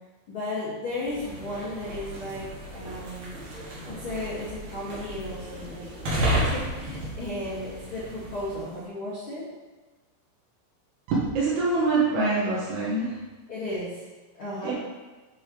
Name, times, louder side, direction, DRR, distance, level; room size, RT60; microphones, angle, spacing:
voice 1, 0.3-3.3 3.9-9.4 13.5-14.0 14.3-14.7, left 1 dB, 85° left, -10 dB, 1.1 m, -35 dB
sound 1, 0.9-8.7, equal, 85° right, 1.5 m, -33 dB
voice 2, 11.1-13.1 14.6-14.7, right 3 dB, 65° right, -8 dB, 2.9 m, -24 dB
9.1 x 7.0 x 3.2 m, 1.2 s
omnidirectional pair, 6.0 m